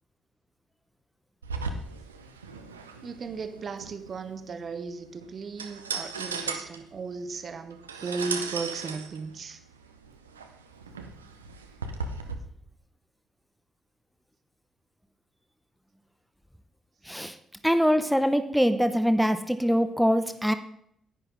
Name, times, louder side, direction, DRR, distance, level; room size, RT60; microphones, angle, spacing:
sound 1, 1.4-12.3, right 4 dB, 90° right, 0.6 m, -37 dB
voice 1, 3.0-9.6, right 4 dB, 50° right, 9 dB, 1.1 m, -36 dB
voice 2, 17.1-17.4 17.6-20.5, equal, ahead, 10 dB, 0.8 m, -23 dB
10.5 x 9.7 x 3.9 m, 0.69 s
hypercardioid pair, 40°, 0 cm